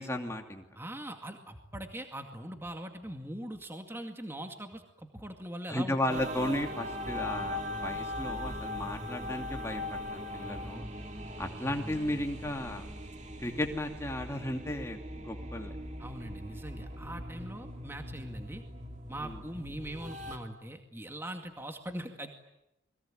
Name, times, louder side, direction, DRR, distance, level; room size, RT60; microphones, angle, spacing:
voice 1, 0.0-0.6 5.7-10.0 10.3-10.9 11.4-12.9 13.4-15.7 19.2-19.4, left 1 dB, 15° left, 3 dB, 2.7 m, -34 dB
voice 2, 0.8-6.2 16.0-18.6 19.1-22.4, right 1 dB, 10° right, 5 dB, 2.2 m, -41 dB
sound 1, 6.1-20.4, left 1 dB, 35° right, 2.8 m, -40 dB
29.5 x 22.5 x 9.0 m, 0.86 s
head